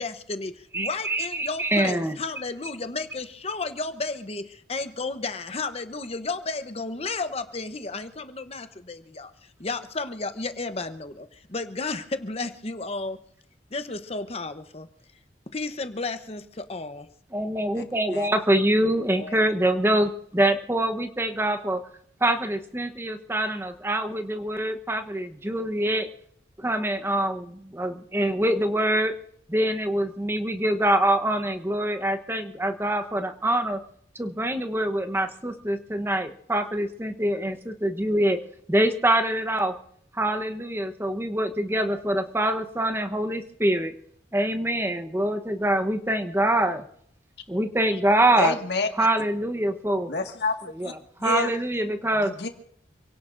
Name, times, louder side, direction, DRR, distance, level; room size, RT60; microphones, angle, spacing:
voice 1, 0.0-13.2 13.7-14.9 15.5-17.1, left 3 dB, 35° left, 9 dB, 0.9 m, -33 dB
voice 2, 0.7-2.2 17.3-21.8 22.2-26.1 26.6-29.1 29.5-33.8 34.1-38.4 38.7-39.8 40.1-43.9 44.3-46.8 47.5-48.6 49.0-50.1 50.7-52.3, right 1 dB, 15° right, 7 dB, 1.0 m, -25 dB
voice 3, 48.4-48.9 50.1-50.5 51.2-51.5 52.2-52.5, left 3 dB, 70° left, 4 dB, 1.8 m, -28 dB
28.5 x 17.0 x 2.6 m, 0.68 s
head